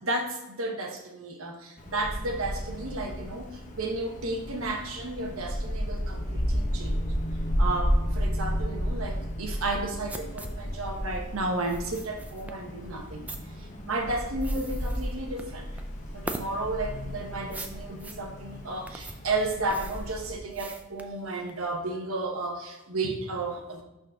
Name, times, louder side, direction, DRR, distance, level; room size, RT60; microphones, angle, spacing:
voice 1, 0.0-7.0 7.6-13.3 13.8-15.7 16.1-23.8, right 2 dB, 85° right, 3 dB, 1.2 m, -33 dB
Wind, 1.8-20.4, equal, 35° left, 1.0 m, -33 dB
pipette pump bag valve mask imbu breath help-glued, 9.7-21.7, right 2 dB, 5° right, 0.4 m, -43 dB
6.3 x 4.2 x 5.7 m, 1.0 s
head